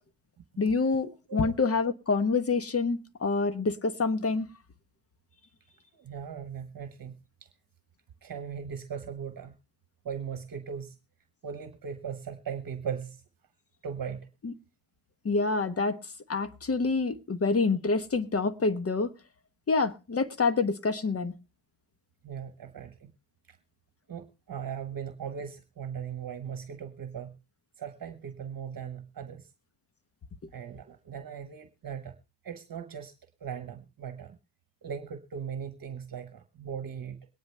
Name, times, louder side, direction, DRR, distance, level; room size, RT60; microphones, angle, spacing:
voice 1, 0.6-4.5 14.4-14.5 15.2-16.0 16.3-19.1 19.7-21.3, left 4 dB, 35° left, 10 dB, 1.1 m, -27 dB
voice 2, 6.0-7.5 8.2-9.5 10.0-11.0 11.4-13.2 13.8-14.3 22.2-23.1 23.5-23.6 24.1-27.4 27.8-29.5 30.5-32.1 32.4-33.1 33.4-34.4 34.8-37.3, right 7 dB, 55° right, 9 dB, 1.1 m, -39 dB
22.0 x 9.6 x 3.3 m, 0.31 s
cardioid pair, 90°, 41 cm